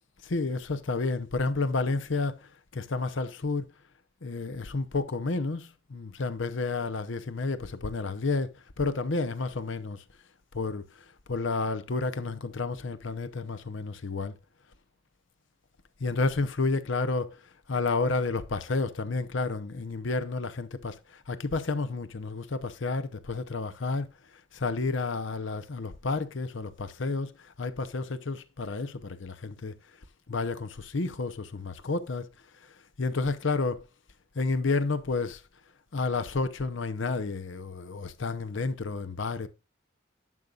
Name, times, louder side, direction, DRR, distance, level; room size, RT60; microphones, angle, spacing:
voice 1, 0.2-2.4 2.7-3.7 4.2-8.5 8.8-10.0 10.5-10.8 11.3-14.4 16.0-17.4 17.7-20.9 21.3-24.1 24.5-27.3 27.6-29.7 30.3-32.3 33.0-33.9 34.3-35.4 35.9-39.5, left 3 dB, 75° left, 0.8 m, -30 dB
11.0 x 6.5 x 2.4 m
head